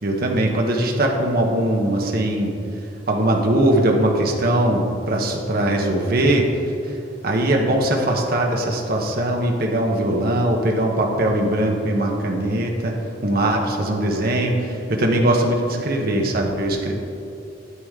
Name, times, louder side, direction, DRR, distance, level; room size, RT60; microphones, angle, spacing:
voice 1, 0.0-2.5 3.1-6.5 6.8-7.0 7.2-13.0 13.2-16.9, right 1 dB, 50° right, 1 dB, 1.0 m, -20 dB
9.6 x 8.3 x 3.7 m, 2.7 s
head